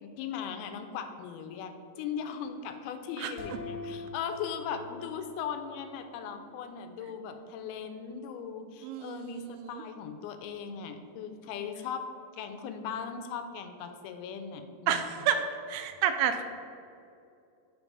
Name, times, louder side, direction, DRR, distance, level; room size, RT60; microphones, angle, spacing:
voice 1, 0.0-12.0 12.3-15.1, left 7 dB, 85° left, 7 dB, 2.4 m, -38 dB
sound 1, 3.4-6.1, left 4 dB, 70° left, 2.1 m, -43 dB
voice 2, 8.8-9.6 14.9-16.4, right 8 dB, 90° right, 8 dB, 2.5 m, -30 dB
5.2 x 4.7 x 5.3 m, 2.5 s
omnidirectional pair, 4.4 m